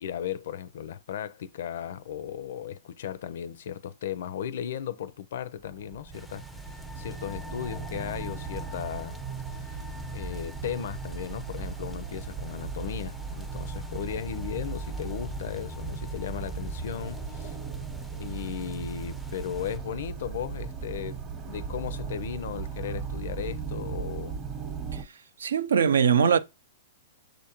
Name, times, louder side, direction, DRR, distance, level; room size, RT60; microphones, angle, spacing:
voice 1, 0.0-9.2 9.6-9.8 10.1-17.6 18.2-24.4, left 9 dB, 65° left, 0.4 m, -36 dB
sound 1, 5.7-25.0, right 6 dB, 25° right, 0.8 m, -37 dB
sound 2, 6.1-19.8, left 5 dB, ahead, 0.4 m, -46 dB
voice 2, 25.4-26.4, right 7 dB, 80° right, 0.4 m, -21 dB
6.3 x 2.5 x 2.9 m
hypercardioid pair, 125°, 0 cm